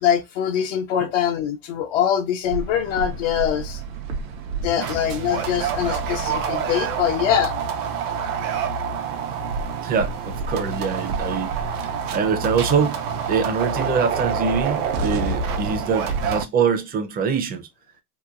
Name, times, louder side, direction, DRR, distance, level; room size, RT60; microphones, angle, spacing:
voice 1, 0.0-3.8 4.6-7.5, left 9 dB, 60° left, 0.6 m, -23 dB
sound 1, 2.5-16.4, right 5 dB, 75° right, 0.7 m, -27 dB
voice 2, 9.8-17.7, right 6 dB, 20° right, 0.5 m, -24 dB
3.0 x 2.2 x 2.4 m
supercardioid pair, 110°, 43 cm